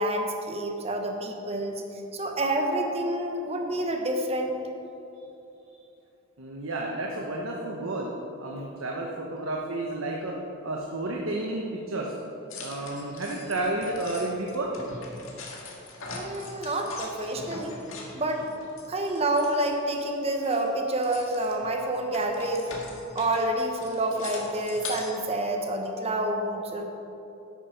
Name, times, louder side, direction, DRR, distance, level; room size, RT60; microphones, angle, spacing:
voice 1, 0.0-1.8 2.1-4.6 16.1-17.8 18.1-18.5 18.9-22.8 23.1-26.8, right 1 dB, 30° right, 3 dB, 1.1 m, -28 dB
voice 2, 6.4-8.1 8.4-10.3 10.6-12.1 12.6-14.7, right 2 dB, 75° right, -1 dB, 1.0 m, -31 dB
sound 1, 12.5-20.0 20.3-25.2, left 3 dB, 75° left, 1.8 m, -42 dB
10.5 x 8.6 x 5.2 m, 2.9 s
head